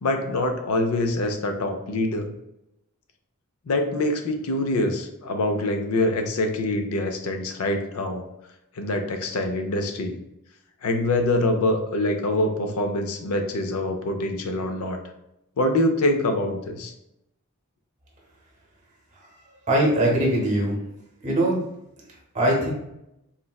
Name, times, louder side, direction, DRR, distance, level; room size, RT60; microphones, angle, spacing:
voice 1, 0.0-2.3 3.7-8.3 8.8-10.2 10.8-15.0 15.6-16.9, left 1 dB, 85° left, 5 dB, 0.5 m, -25 dB
voice 2, 19.7-20.8 21.2-21.6 22.3-22.7, right 1 dB, 35° right, -2 dB, 0.7 m, -21 dB
3.8 x 2.1 x 2.2 m, 0.85 s
head